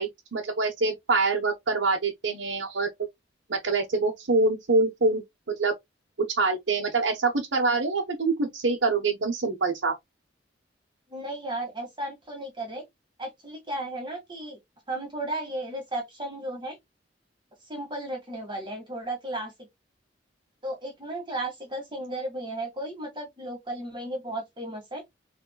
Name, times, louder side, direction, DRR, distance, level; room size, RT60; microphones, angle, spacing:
voice 1, 0.0-2.9 3.5-5.2 5.6-5.7 6.3-9.9, right 3 dB, 75° right, 1.1 m, -25 dB
voice 2, 11.1-12.8 13.2-14.6 14.9-16.8 17.7-19.5 20.6-25.0, right 1 dB, 25° right, 2.0 m, -34 dB
6.4 x 3.5 x 2.4 m
head